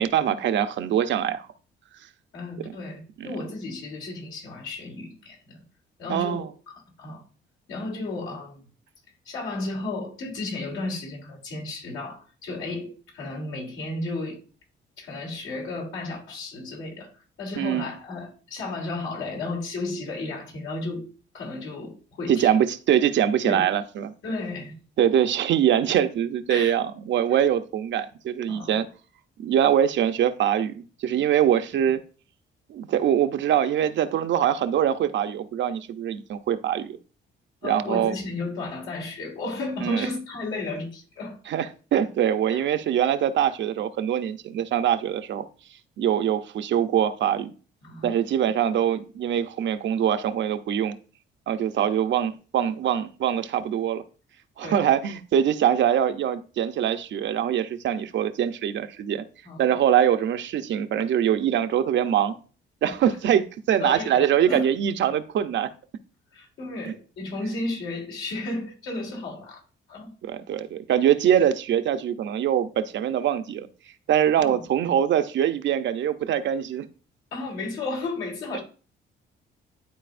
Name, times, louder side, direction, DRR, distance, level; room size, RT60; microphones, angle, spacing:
voice 1, 0.0-1.5 3.2-3.4 6.1-6.5 17.6-17.9 22.3-24.1 25.0-28.9 29.4-32.0 32.7-37.0 37.6-38.1 39.8-40.1 41.5-45.5 46.0-47.5 48.0-51.0 51.5-54.0 54.6-59.2 59.6-62.3 62.8-65.7 66.8-66.9 70.2-73.7 74.1-76.9, right 10 dB, 65° right, 0.7 m, -23 dB
voice 2, 2.3-5.6 6.0-7.2 7.7-8.7 9.2-14.4 15.0-17.1 17.4-21.1 21.3-22.5 23.4-23.7 24.2-24.7 26.5-26.8 28.5-28.8 37.6-41.4 42.5-42.6 47.8-48.1 54.6-54.9 59.4-59.8 62.8-62.9 63.8-64.7 66.3-69.6 69.9-70.1 74.3-74.8 77.3-78.6, left 2 dB, 80° left, 3.1 m, -33 dB
11.5 x 4.1 x 2.5 m
cardioid pair, 90°, 20 cm